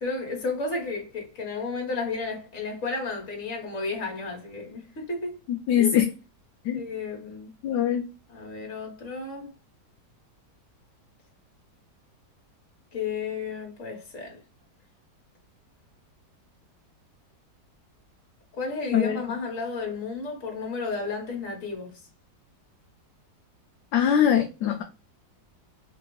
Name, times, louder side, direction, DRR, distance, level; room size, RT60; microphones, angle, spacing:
voice 1, 0.0-5.4 5.8-5.9 6.7-7.5 8.3-9.5 12.9-14.4 18.5-22.0, left 4 dB, 50° left, 1.6 m, -32 dB
voice 2, 5.5-6.1 6.6-6.8 7.6-8.1 18.9-19.2 23.9-24.8, left 9 dB, 75° left, 1.1 m, -22 dB
3.4 x 2.4 x 3.0 m
omnidirectional pair, 1.9 m